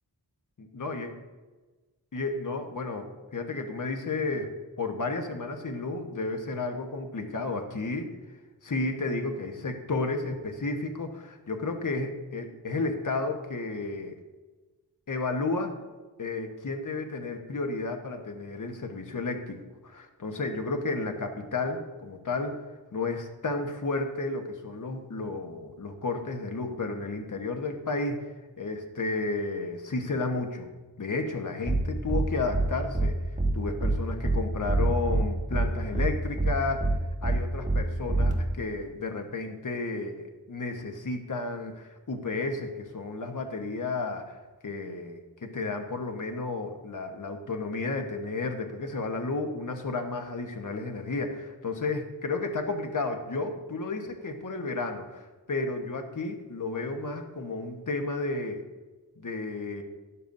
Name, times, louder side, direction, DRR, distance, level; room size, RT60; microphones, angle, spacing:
voice 1, 0.6-1.1 2.1-4.5 4.8-8.1 8.6-14.2 15.1-15.7 16.2-22.5 22.9-28.3 28.6-30.7 31.0-33.1 33.5-36.9 37.2-44.3 44.6-58.6 59.2-59.8, left 3 dB, 50° left, 4 dB, 1.2 m, -32 dB
sound 1, 31.7-31.8 32.1-32.2 32.5-32.7 32.9-33.1 33.4-33.5 33.8-33.9 34.2-34.4 34.7-35.2 35.5-35.7 35.9-36.1 36.4-36.5 36.8-36.9 37.2-37.4 37.7-37.8 38.1-38.3, right 2 dB, 20° right, 1.3 m, -24 dB
12.5 x 9.9 x 2.6 m, 1.2 s
wide cardioid pair, 90°, 40 cm